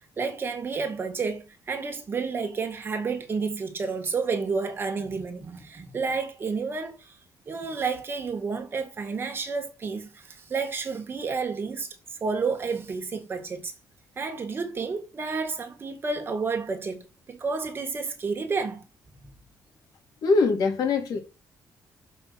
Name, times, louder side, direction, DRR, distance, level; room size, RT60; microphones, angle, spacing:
voice 1, 0.2-7.2 7.5-11.9 12.2-13.7 14.2-18.8 19.2-19.3, right 4 dB, 35° right, 1.9 m, -30 dB
voice 2, 20.2-21.2, left 4 dB, 70° left, 2.9 m, -22 dB
6.9 x 5.5 x 5.7 m
cardioid pair, 145°, 7 cm